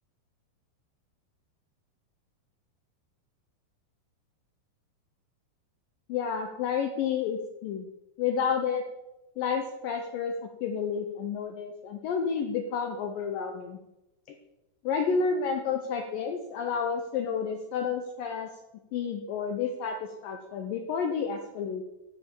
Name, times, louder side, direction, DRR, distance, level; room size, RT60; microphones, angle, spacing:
voice 1, 6.1-7.9 8.2-8.8 9.4-10.3 10.6-13.8 14.8-18.5 18.9-21.8, left 6 dB, 90° left, 4 dB, 1.9 m, -30 dB
13.5 x 5.2 x 8.6 m, 0.99 s
omnidirectional pair, 5.1 m